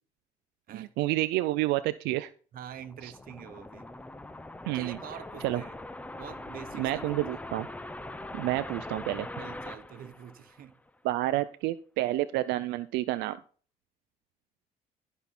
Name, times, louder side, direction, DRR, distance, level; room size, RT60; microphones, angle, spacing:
voice 1, 0.7-2.3 3.0-3.1 4.7-5.0 5.4-5.6 6.8-7.7 8.3-9.3 11.0-13.4, right 16 dB, 85° right, 0.5 m, -29 dB
sound 1, 2.5-10.9, left 2 dB, 10° left, 0.7 m, -42 dB
voice 2, 2.5-3.9 4.7-5.7 6.2-7.2 9.4-10.8, right 10 dB, 60° right, 1.1 m, -45 dB
15.0 x 5.6 x 4.2 m
cardioid pair, 110°, 17 cm